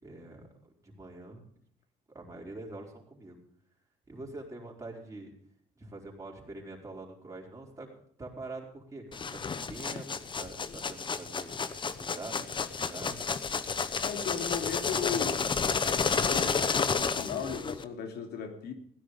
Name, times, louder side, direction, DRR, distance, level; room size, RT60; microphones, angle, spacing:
voice 1, 0.0-1.4 2.1-3.4 4.1-5.3 5.8-7.9 8.2-11.5 11.8-13.2, right 2 dB, 20° right, -1 dB, 4.7 m, -45 dB
sound 1, 9.1-17.8, left 5 dB, 30° left, 0.9 m, -31 dB
voice 2, 14.0-15.4 16.1-18.7, left 7 dB, 70° left, 5 dB, 2.8 m, -36 dB
16.5 x 10.0 x 5.1 m, 0.62 s
cardioid pair, 110°, 17 cm